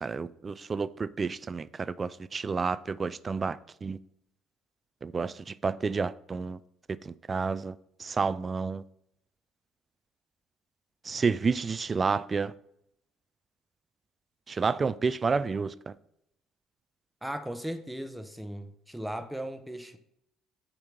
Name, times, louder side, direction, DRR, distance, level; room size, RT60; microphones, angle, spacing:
voice 1, 0.0-4.0 5.0-6.6 7.0-8.8 11.0-12.5 14.5-15.9, right 5 dB, 35° right, 0.3 m, -30 dB
voice 2, 17.2-20.0, right 1 dB, 5° right, 0.9 m, -37 dB
8.8 x 3.0 x 5.3 m
hypercardioid pair, 60°, 0 cm